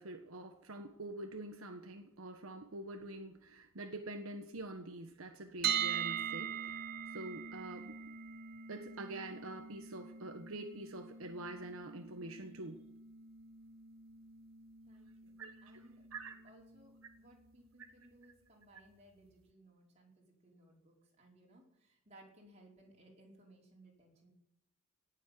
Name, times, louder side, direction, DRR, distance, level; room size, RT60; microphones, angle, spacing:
voice 1, 0.0-8.0 8.7-12.8 15.4-15.7 16.1-16.4, right 2 dB, 80° right, 5 dB, 1.4 m, -46 dB
sound 1, 5.6-17.5, right 8 dB, 45° right, 0.7 m, -43 dB
voice 2, 14.8-24.3, right 1 dB, 30° right, -2 dB, 5.1 m, -63 dB
18.5 x 7.5 x 9.4 m, 0.79 s
head